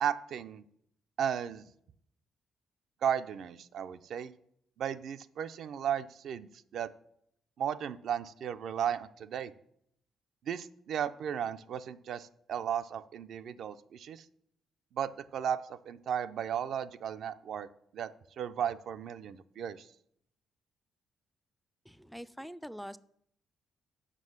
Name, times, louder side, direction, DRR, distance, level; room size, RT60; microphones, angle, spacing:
voice 1, 0.0-0.6 1.2-1.7 3.0-4.3 4.8-6.9 7.6-9.5 10.5-14.2 14.9-17.7 17.9-18.1 18.4-19.9, right 9 dB, 70° right, 11 dB, 0.5 m, -35 dB
voice 2, 21.9-23.0, equal, ahead, 16 dB, 0.4 m, -44 dB
7.5 x 5.7 x 6.5 m, 0.71 s
cardioid pair, 90°, 0 cm